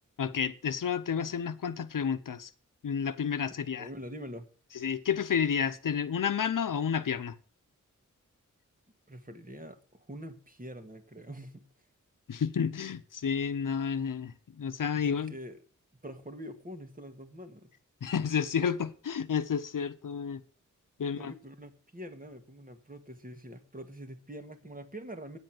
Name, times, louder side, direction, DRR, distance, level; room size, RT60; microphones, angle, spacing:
voice 1, 0.2-2.5 2.8-3.9 4.8-7.3 12.3-15.3 18.0-20.4 21.0-21.3, left 7 dB, 80° left, 0.8 m, -31 dB
voice 2, 3.8-4.5 9.1-11.7 14.9-15.6 16.0-17.7 21.0-25.4, equal, 25° right, 1.9 m, -45 dB
9.7 x 7.9 x 7.6 m
wide cardioid pair, 70°, 32 cm